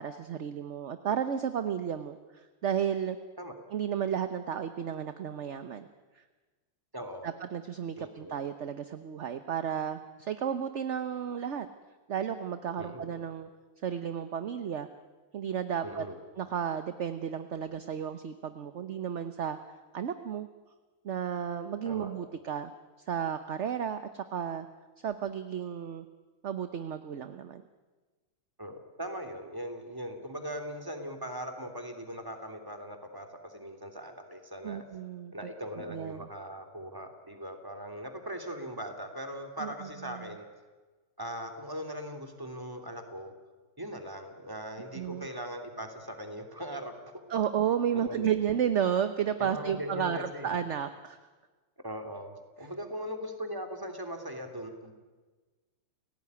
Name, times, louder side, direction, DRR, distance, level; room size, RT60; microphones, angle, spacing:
voice 1, 0.0-3.2 3.7-5.9 7.2-11.7 12.1-13.5 13.8-14.9 15.3-16.1 16.4-19.6 19.9-20.5 21.0-22.7 23.1-24.7 25.0-26.0 26.4-27.6 34.6-35.3 35.7-36.3 39.6-40.2 44.9-45.3 47.3-51.2, right 8 dB, 50° right, 10 dB, 1.0 m, -33 dB
voice 2, 6.9-7.3 8.0-8.3 12.8-13.1 15.8-16.2 21.8-22.1 28.6-34.8 35.3-40.5 41.2-43.3 43.8-46.9 47.9-48.3 49.4-50.5 51.8-54.9, equal, 10° right, 5 dB, 3.0 m, -40 dB
29.5 x 17.5 x 9.7 m, 1.3 s
omnidirectional pair, 2.1 m